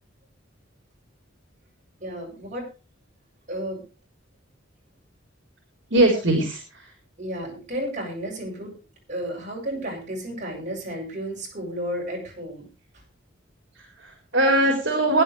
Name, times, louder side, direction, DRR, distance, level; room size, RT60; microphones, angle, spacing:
voice 1, 2.0-2.7 3.5-3.8 7.2-8.7 9.1-12.7 12.9-13.0, equal, 40° right, -1 dB, 7.7 m, -32 dB
voice 2, 5.9-6.9 13.8-15.2, right 1 dB, 65° right, 1 dB, 3.9 m, -21 dB
21.5 x 10.5 x 3.3 m, 0.34 s
head